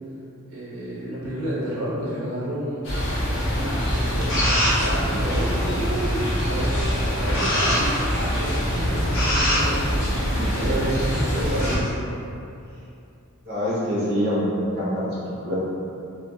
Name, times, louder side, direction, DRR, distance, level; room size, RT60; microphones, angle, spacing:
voice 1, 0.5-2.9 3.5-12.2, right 1 dB, 85° right, -8 dB, 0.9 m, -30 dB
sound 1, 2.8-11.8, equal, 60° left, 0.7 m, -23 dB
voice 2, 13.4-15.6, equal, 45° right, -9 dB, 0.9 m, -25 dB
3.0 x 2.5 x 2.3 m, 2.6 s
head